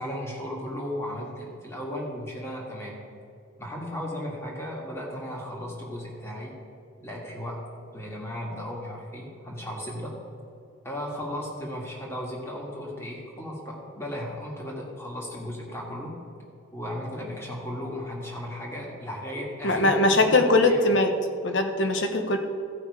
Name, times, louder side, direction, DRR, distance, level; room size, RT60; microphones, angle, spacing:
voice 1, 0.0-3.0 3.6-6.6 7.0-7.6 7.9-10.2 10.8-16.2 16.7-19.9 20.4-20.8, left 1 dB, 15° left, -3 dB, 1.8 m, -35 dB
voice 2, 19.6-21.1 21.4-22.4, left 2 dB, 65° left, 6 dB, 1.0 m, -21 dB
15.0 x 5.6 x 4.8 m, 2.6 s
head